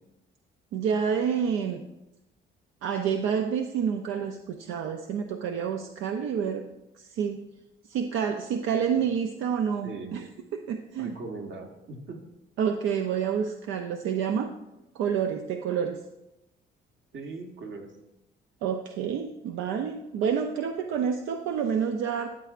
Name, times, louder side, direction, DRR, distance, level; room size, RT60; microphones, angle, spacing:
voice 1, 0.7-1.8 2.8-6.6 7.0-7.4 7.8-10.3 10.5-11.1 12.6-14.5 14.9-16.0 18.6-22.3, right 7 dB, 90° right, 5 dB, 0.5 m, -28 dB
voice 2, 9.8-10.2 10.9-12.2 17.1-17.9, right 3 dB, 65° right, 2 dB, 1.4 m, -39 dB
13.0 x 8.0 x 2.5 m, 0.94 s
cardioid pair, 90°, 20 cm